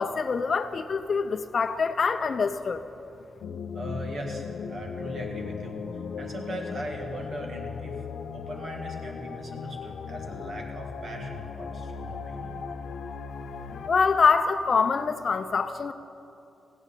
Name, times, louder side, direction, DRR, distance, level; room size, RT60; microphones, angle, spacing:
voice 1, 0.0-2.8 13.9-15.9, left 5 dB, 45° left, 11 dB, 0.6 m, -25 dB
sound 1, 3.4-13.9, left 6 dB, 85° left, 0.6 m, -37 dB
voice 2, 3.7-8.0 8.3-12.6, right 1 dB, 45° right, 1 dB, 1.9 m, -39 dB
16.0 x 9.9 x 6.8 m, 2.7 s
wide cardioid pair, 145°, 0 cm